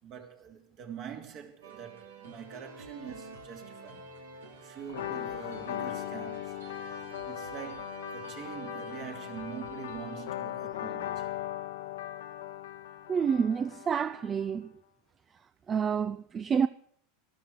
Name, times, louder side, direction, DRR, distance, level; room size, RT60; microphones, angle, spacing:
voice 1, 0.0-6.6 7.2-11.3, right 9 dB, 50° right, 3.1 m, -44 dB
sound 1, 1.6-10.3, right 4 dB, 90° right, 2.8 m, -48 dB
sound 2, 4.9-14.5, left 13 dB, 75° left, 1.0 m, -39 dB
voice 2, 13.1-14.7 15.7-16.7, right 7 dB, 30° right, 0.5 m, -28 dB
13.5 x 12.5 x 6.6 m
hypercardioid pair, 95°, 0 cm